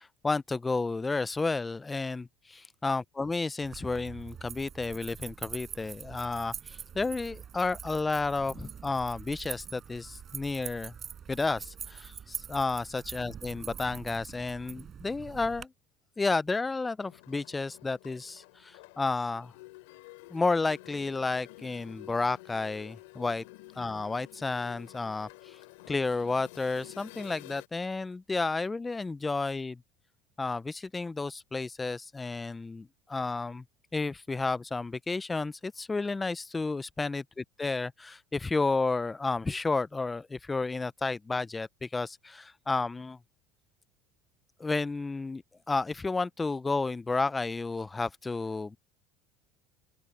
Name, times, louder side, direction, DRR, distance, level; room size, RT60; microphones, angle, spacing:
voice 1, 0.2-2.3 2.8-10.9 11.3-15.7 16.2-19.5 20.3-23.4 23.8-25.6 25.9-29.8 30.4-33.6 33.9-43.2 44.6-48.8, left 3 dB, 15° left, 0.5 m, -31 dB
sound 1, 3.6-15.6, right 8 dB, 35° right, 5.2 m, -44 dB
sound 2, 17.0-27.7, left 22 dB, 85° left, 3.4 m, -51 dB
open air
supercardioid pair, 110°, 0 cm